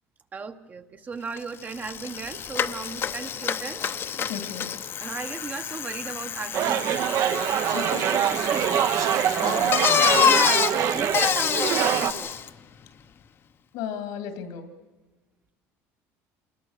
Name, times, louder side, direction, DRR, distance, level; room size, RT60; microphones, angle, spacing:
voice 1, 0.3-3.8 5.0-7.5 8.3-9.7 10.2-12.3, right 5 dB, 25° right, 9 dB, 1.1 m, -36 dB
Bicycle, 1.4-1.5 1.7-12.5, left 8 dB, 40° left, 0.9 m, -27 dB
voice 2, 4.3-4.7 7.7-8.2 9.1-9.9 13.7-14.7, left 8 dB, 85° left, 9 dB, 2.7 m, -35 dB
sound 1, 6.5-12.1, right 10 dB, 55° right, 1.0 m, -24 dB
27.5 x 20.5 x 6.5 m, 1.2 s
cardioid pair, 135°, 6 cm